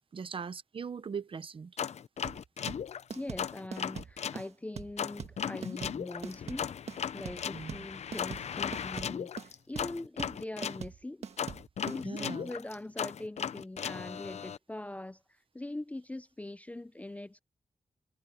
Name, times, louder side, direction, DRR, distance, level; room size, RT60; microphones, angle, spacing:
voice 1, 0.1-1.8 7.5-7.9 12.0-12.5, right 6 dB, 50° right, 0.8 m, -40 dB
sound 1, 1.8-4.4 5.0-10.8 11.4-14.6, left 8 dB, 75° left, 0.6 m, -37 dB
sound 2, 2.2-12.0, right 6 dB, 70° right, 1.5 m, -42 dB
voice 2, 3.1-6.8 7.1-11.3 11.8-15.2 15.5-17.4, left 1 dB, 10° left, 0.4 m, -42 dB
wide cardioid pair, 125°, 12 cm